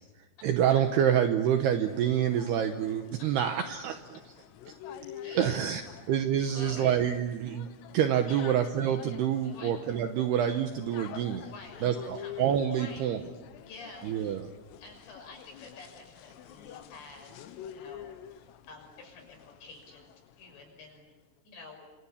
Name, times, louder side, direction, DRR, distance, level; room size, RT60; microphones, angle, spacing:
voice 1, 0.4-4.2 4.7-4.8 5.3-5.8 6.1-7.7 7.9-11.5 11.8-13.3 14.0-14.5, right 9 dB, 75° right, 7 dB, 2.5 m, -27 dB
sound 1, 1.5-20.8, left 10 dB, 85° left, 3.9 m, -48 dB
voice 2, 5.2-5.6 6.5-6.9 8.3-8.4 9.4-9.8 11.4-13.1 13.6-14.4 14.8-20.1 20.4-21.0 21.4-21.9, left 3 dB, 60° left, 3 dB, 8.1 m, -49 dB
28.5 x 27.0 x 7.2 m, 1.2 s
omnidirectional pair, 5.8 m